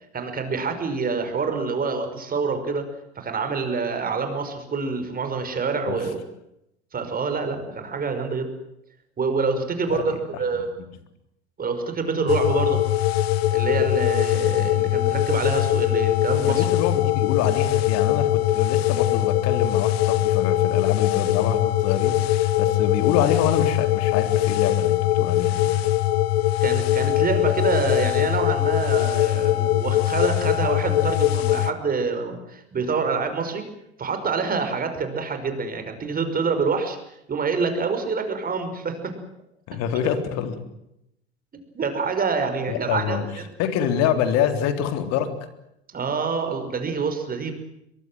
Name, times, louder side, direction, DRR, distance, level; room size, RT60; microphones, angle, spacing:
voice 1, 0.1-2.8 3.2-6.3 6.9-8.5 9.2-10.7 11.6-12.8 13.5-16.7 26.6-33.7 34.0-37.0 37.3-39.1 41.7-43.2 45.9-47.5, right 4 dB, 25° right, 7 dB, 5.7 m, -26 dB
voice 2, 9.9-10.2 16.4-25.7 39.7-40.6 42.7-43.3 43.6-45.3, left 9 dB, 50° left, 8 dB, 3.6 m, -26 dB
sound 1, 12.3-31.7, left 14 dB, 65° left, 1.4 m, -21 dB
23.0 x 23.0 x 7.7 m, 0.82 s
figure-of-eight pair, 75°, 33 cm